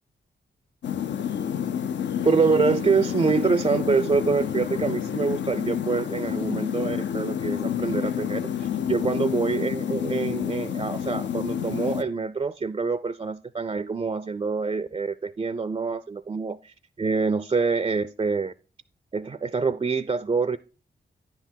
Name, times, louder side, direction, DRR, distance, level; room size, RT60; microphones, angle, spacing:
sound 1, 0.8-12.0, left 9 dB, 70° left, 0.5 m, -29 dB
voice 1, 2.2-18.5 19.1-20.6, right 4 dB, 30° right, 0.3 m, -26 dB
9.6 x 5.9 x 4.4 m
cardioid pair, 55°, 19 cm